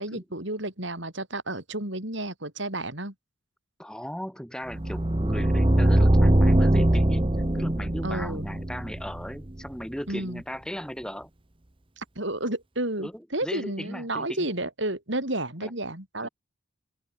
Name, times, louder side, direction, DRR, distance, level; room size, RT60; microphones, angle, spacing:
voice 1, 0.0-3.1 8.0-8.5 10.1-10.4 12.0-16.3, right 1 dB, 60° right, 6.0 m, -31 dB
voice 2, 3.8-7.3 7.5-11.3 13.0-14.5 15.6-15.7 16.2-16.3, equal, 5° left, 7.5 m, -37 dB
sound 1, 4.7-9.7, right 1 dB, 25° right, 1.0 m, -22 dB
open air
head